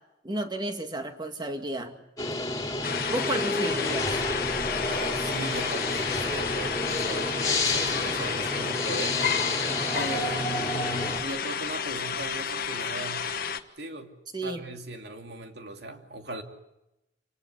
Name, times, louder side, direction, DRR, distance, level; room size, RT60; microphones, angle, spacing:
voice 1, 0.2-2.0 3.1-4.2 14.3-14.6, right 1 dB, 25° right, 6 dB, 2.1 m, -32 dB
sound 1, 2.2-11.2, left 2 dB, 20° left, 3.2 m, -30 dB
sound 2, 2.8-13.6, left 6 dB, 50° left, 1.3 m, -31 dB
voice 2, 4.8-9.4 9.9-13.3 13.8-14.1 14.4-16.4, right 2 dB, 65° right, 5 dB, 2.8 m, -38 dB
28.5 x 18.5 x 8.2 m, 0.93 s
head